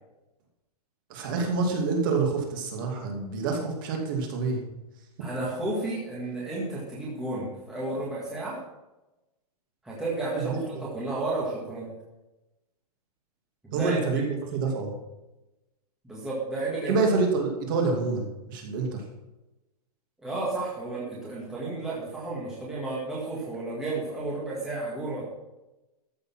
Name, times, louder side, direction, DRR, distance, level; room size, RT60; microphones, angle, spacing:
voice 1, 1.1-4.7 10.3-10.6 13.7-14.9 16.9-19.0, right 4 dB, 30° right, 1 dB, 2.4 m, -27 dB
voice 2, 5.2-8.6 9.8-11.9 13.6-14.0 16.0-17.0 20.2-25.3, right 2 dB, 5° right, -7 dB, 1.8 m, -32 dB
14.0 x 6.8 x 5.9 m, 0.99 s
hypercardioid pair, 180°, 20 cm